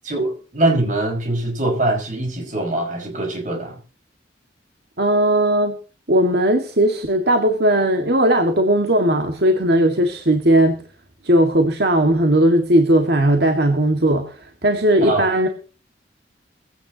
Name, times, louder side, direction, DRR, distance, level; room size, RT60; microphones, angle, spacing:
voice 1, 0.0-3.8 15.0-15.3, right 2 dB, 45° right, 2 dB, 5.6 m, -22 dB
voice 2, 5.0-5.8 6.1-10.8 11.2-15.5, right 1 dB, 60° right, 5 dB, 2.0 m, -17 dB
20.5 x 16.0 x 3.0 m, 0.37 s
head